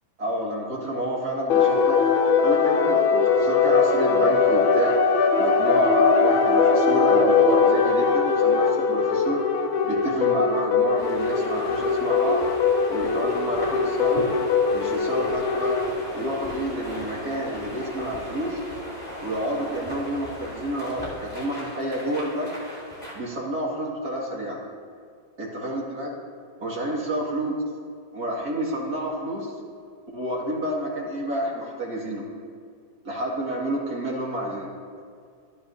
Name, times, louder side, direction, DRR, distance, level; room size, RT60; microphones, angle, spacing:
voice 1, 0.2-2.0 2.4-5.0 5.4-9.4 9.8-12.4 12.9-14.3 14.7-15.8 16.1-18.6 19.2-22.5 23.1-24.6 25.4-26.1 26.6-27.5 28.1-29.5 30.1-32.2 33.0-34.7, right 1 dB, 50° right, -4 dB, 2.7 m, -29 dB
sound 1, 1.5-15.9, left 5 dB, 80° left, 1.8 m, -21 dB
sound 2, 11.0-23.2, equal, 20° left, 3.2 m, -37 dB
24.5 x 10.0 x 2.8 m, 2.2 s
omnidirectional pair, 2.2 m